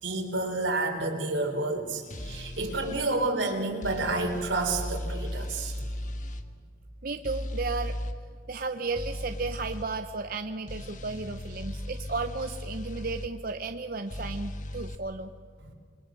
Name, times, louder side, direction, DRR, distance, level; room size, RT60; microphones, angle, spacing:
voice 1, 0.0-5.8, right 2 dB, 90° right, 3 dB, 3.8 m, -29 dB
sound 1, 2.1-3.0 3.8-6.4 7.2-8.2 9.0-9.9 10.7-13.3 14.1-15.0, left 1 dB, 40° left, 1.4 m, -36 dB
voice 2, 7.0-8.0 8.5-15.3, right 3 dB, 50° right, 7 dB, 0.7 m, -34 dB
27.5 x 21.5 x 6.3 m, 2.1 s
head